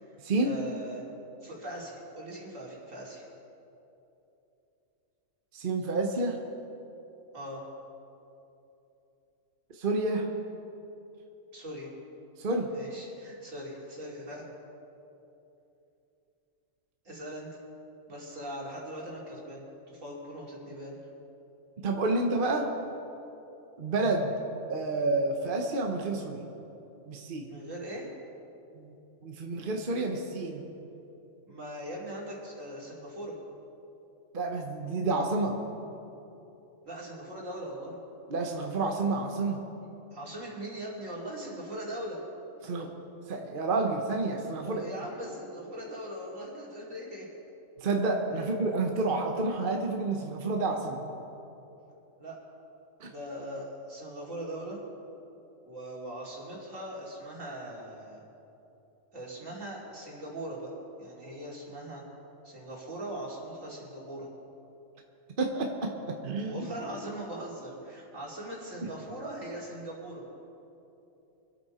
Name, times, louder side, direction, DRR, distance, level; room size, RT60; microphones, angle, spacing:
voice 1, 0.4-1.1 1.4-3.2 7.3-7.6 11.5-11.9 12.7-14.5 17.0-17.5 18.1-21.0 27.5-28.1 31.5-33.4 36.8-37.9 40.1-42.2 44.6-47.3 52.2-52.4 53.1-54.8 55.7-58.2 59.1-62.0 62.4-64.3 66.5-70.2, right 1 dB, 75° right, -4 dB, 3.2 m, -40 dB
voice 2, 5.5-6.4 9.8-10.3 12.4-12.7 21.8-22.7 23.8-24.3 24.7-26.4 27.1-27.5 28.8-28.9 29.2-30.6 34.3-35.6 38.3-39.6 42.6-42.9 43.3-44.9 47.8-51.0 53.0-53.1 65.4-66.7, right 3 dB, 45° right, 2 dB, 1.1 m, -29 dB
24.5 x 8.7 x 4.3 m, 2.9 s
omnidirectional pair, 1.3 m